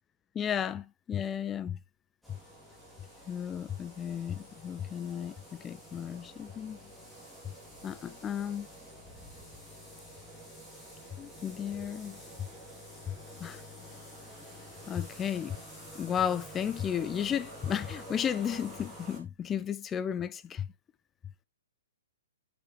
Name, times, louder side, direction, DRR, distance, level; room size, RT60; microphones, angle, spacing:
voice 1, 0.3-1.8 2.3-2.4 3.3-6.8 7.8-8.7 11.1-12.5 13.1-13.2 13.4-13.6 14.9-15.6 15.9-20.7, left 9 dB, 15° left, 0.5 m, -34 dB
sound 1, 2.2-19.2, equal, ahead, 3.1 m, -49 dB
8.2 x 6.9 x 3.2 m
figure-of-eight pair, 120°, 0 cm